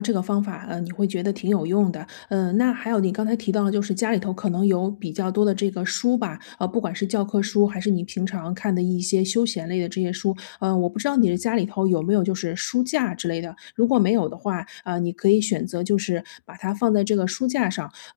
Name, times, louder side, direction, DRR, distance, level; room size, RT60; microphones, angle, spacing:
voice 1, 0.0-18.1, left 21 dB, 40° left, 1.0 m, -24 dB
hypercardioid pair, 155°, 17 cm